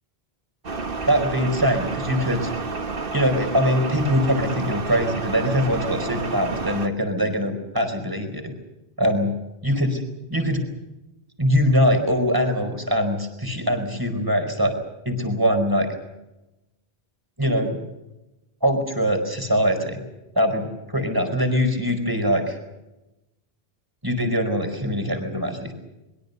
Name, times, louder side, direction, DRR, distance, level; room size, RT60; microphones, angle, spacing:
sound 1, 0.6-6.9, right 4 dB, 60° right, 1.7 m, -30 dB
voice 1, 1.1-2.5 3.1-8.5 9.0-9.3 9.6-10.0 10.3-10.6 11.4-14.7 15.0-15.9 17.4-17.8 18.6-20.0 20.3-22.6 24.0-25.7, equal, 20° right, 6 dB, 4.8 m, -22 dB
23.5 x 22.5 x 6.8 m, 0.96 s
omnidirectional pair, 1.0 m